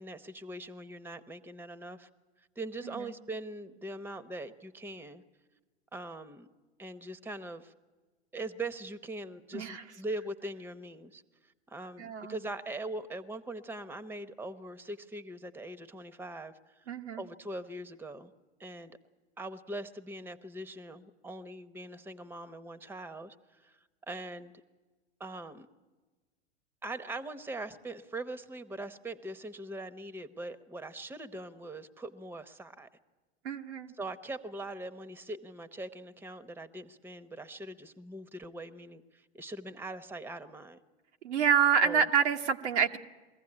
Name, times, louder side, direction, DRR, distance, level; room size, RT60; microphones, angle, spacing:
voice 1, 0.0-2.1 2.6-5.2 5.9-6.5 6.8-7.7 8.3-11.2 11.7-18.3 18.6-19.0 19.4-23.8 24.1-24.5 25.2-25.7 26.8-32.9 34.0-40.8 41.8-42.1, right 2 dB, 5° right, 12 dB, 0.9 m, -41 dB
voice 2, 12.0-12.3 16.9-17.2 33.4-33.9 41.2-43.0, right 7 dB, 85° right, 5 dB, 1.2 m, -27 dB
22.5 x 15.5 x 9.9 m, 1.3 s
hypercardioid pair, 105°, 34 cm